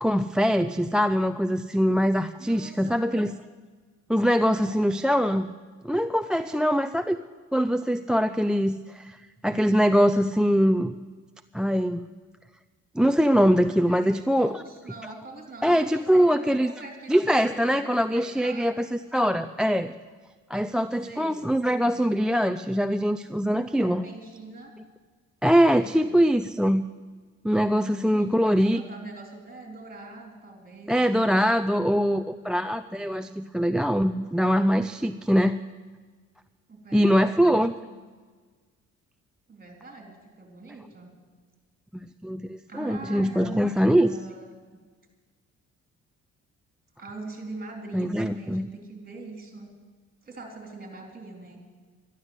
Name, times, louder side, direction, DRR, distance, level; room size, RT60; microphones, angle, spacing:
voice 1, 0.0-3.3 4.1-5.5 5.8-7.2 7.5-9.2 9.4-10.9 11.5-12.1 13.0-14.6 15.6-16.7 17.1-19.9 20.5-24.0 25.4-26.8 27.4-28.8 30.9-35.6 36.9-37.7 42.2-44.1 47.9-48.7, equal, 5° right, 12 dB, 0.4 m, -23 dB
voice 2, 2.4-3.3 4.5-4.8 13.8-17.1 17.5-18.8 19.1-19.5 21.0-21.5 23.8-24.7 25.7-26.2 27.7-31.5 36.7-38.0 39.5-41.1 42.7-44.6 47.0-49.7 50.2-51.6, right 2 dB, 30° right, 2 dB, 3.9 m, -43 dB
12.5 x 11.5 x 8.1 m, 1.4 s
cardioid pair, 90°, 30 cm